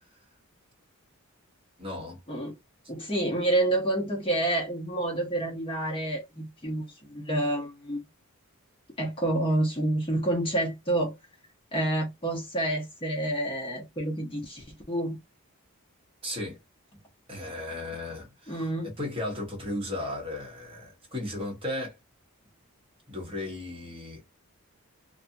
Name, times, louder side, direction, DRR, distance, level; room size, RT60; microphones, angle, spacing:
voice 1, 1.8-2.2 16.2-16.6 17.3-22.0 23.1-24.2, left 1 dB, 25° right, 0.9 m, -35 dB
voice 2, 2.9-8.0 9.0-11.1 11.7-15.2 18.5-18.9, right 1 dB, 25° left, 0.8 m, -28 dB
2.6 x 2.3 x 2.6 m
head